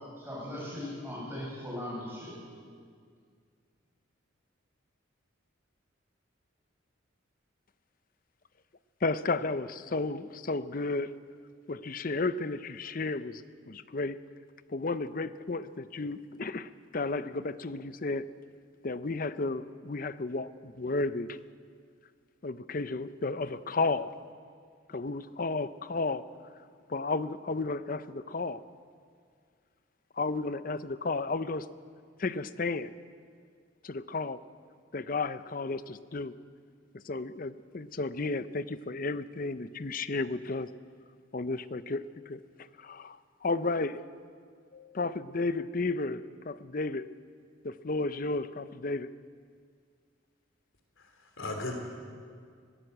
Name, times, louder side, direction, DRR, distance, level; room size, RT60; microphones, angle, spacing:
voice 1, 0.2-2.3, left 1 dB, 10° right, -5 dB, 7.2 m, -38 dB
voice 2, 9.0-11.2 11.7-14.2 14.7-18.3 18.8-21.4 22.4-24.1 24.9-26.2 26.9-28.6 30.2-31.7 32.2-32.9 33.8-34.4 34.9-36.3 36.9-40.7 41.3-44.0 44.7-47.1 47.6-49.2, left 3 dB, 45° left, 14 dB, 0.6 m, -33 dB
voice 3, 51.0-51.7, left 2 dB, 80° left, 3 dB, 3.3 m, -37 dB
21.5 x 17.5 x 8.0 m, 2.1 s
head